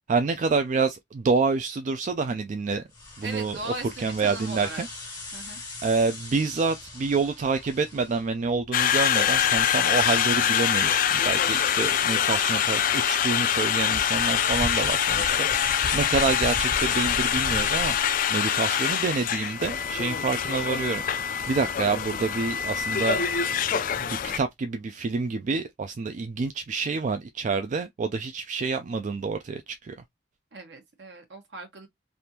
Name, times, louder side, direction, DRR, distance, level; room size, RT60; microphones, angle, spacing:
voice 1, 0.1-2.8 3.2-3.6 4.0-4.9 5.8-15.5 15.9-18.0 18.3-21.0 21.5-23.2 23.5-29.9, right 4 dB, 45° right, 0.3 m, -27 dB
sound 1, 2.9-18.3, left 2 dB, 20° left, 1.9 m, -38 dB
voice 2, 3.2-4.8 5.3-5.6 30.5-31.9, right 3 dB, 80° right, 1.2 m, -38 dB
Conversation, 8.7-24.4, left 9 dB, 50° left, 0.4 m, -25 dB
3.4 x 2.5 x 2.8 m
head